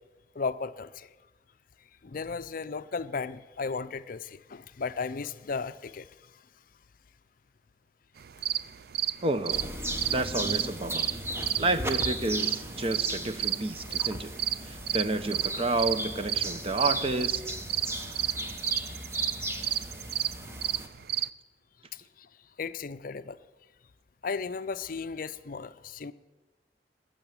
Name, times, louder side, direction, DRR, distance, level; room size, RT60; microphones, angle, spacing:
voice 1, 0.3-1.1 2.0-6.4 13.9-14.0 21.9-22.3 22.6-23.4 24.2-26.1, left 5 dB, 50° left, 14 dB, 0.5 m, -35 dB
sound 1, 8.2-21.3, right 11 dB, 60° right, 0.4 m, -31 dB
voice 2, 9.2-9.7 10.1-11.1 11.6-14.3 14.6-17.4, right 2 dB, 35° right, 11 dB, 0.8 m, -30 dB
sound 2, 9.5-20.9, right 1 dB, 15° right, 1.2 m, -37 dB
20.0 x 6.8 x 9.1 m, 1.2 s
head